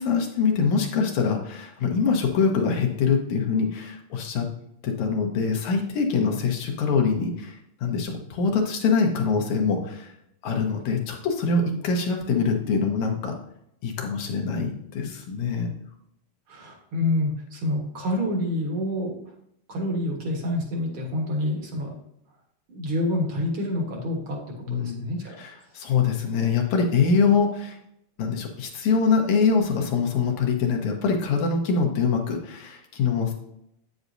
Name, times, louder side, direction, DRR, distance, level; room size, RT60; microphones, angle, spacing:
voice 1, 0.0-4.5 4.8-10.1 10.4-13.4 13.8-15.7 24.7-25.1 25.4-27.8 28.2-33.3, left 5 dB, 70° left, 2 dB, 2.4 m, -24 dB
voice 2, 16.5-19.1 19.7-21.9 22.7-25.6, left 1 dB, 55° right, 1 dB, 1.7 m, -28 dB
8.6 x 8.1 x 2.7 m, 0.75 s
omnidirectional pair, 3.7 m